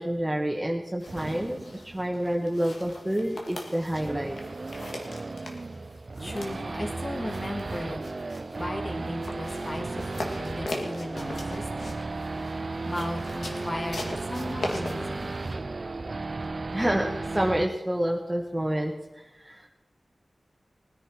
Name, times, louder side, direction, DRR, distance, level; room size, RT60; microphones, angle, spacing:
voice 1, 0.0-1.6 1.8-4.4 16.7-18.9 19.4-19.7, right 1 dB, 15° right, 1 dB, 1.4 m, -28 dB
sound 1, 1.0-15.6, left 2 dB, 85° left, 2.0 m, -41 dB
Race car auto racing / Idling / Accelerating revving vroom, 1.1-17.7, right 3 dB, 55° right, 0.5 m, -35 dB
voice 2, 6.2-8.1 8.6-11.9 12.8-15.3, left 1 dB, 35° left, 3 dB, 2.2 m, -36 dB
19.5 x 10.0 x 4.5 m, 0.96 s
wide cardioid pair, 60°, 0 cm